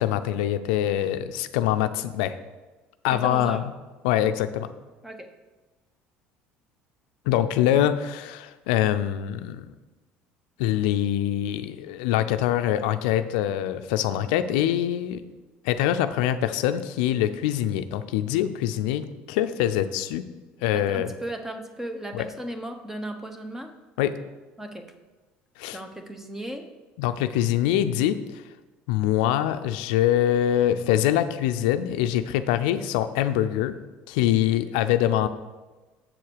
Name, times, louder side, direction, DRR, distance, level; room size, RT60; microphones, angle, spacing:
voice 1, 0.0-2.4 3.0-3.6 4.0-4.7 7.3-9.6 10.6-15.2 15.6-20.2 20.6-21.1 22.1-22.3 24.0-24.2 25.6-25.8 27.0-28.4 28.9-33.8 34.1-35.3, left 11 dB, 85° left, 11 dB, 0.5 m, -24 dB
voice 2, 3.1-3.6 5.0-5.3 20.7-23.7 24.6-24.9 25.7-26.6, right 1 dB, 10° right, 6 dB, 1.0 m, -35 dB
7.7 x 4.6 x 6.6 m, 1.2 s
supercardioid pair, 95°, 5 cm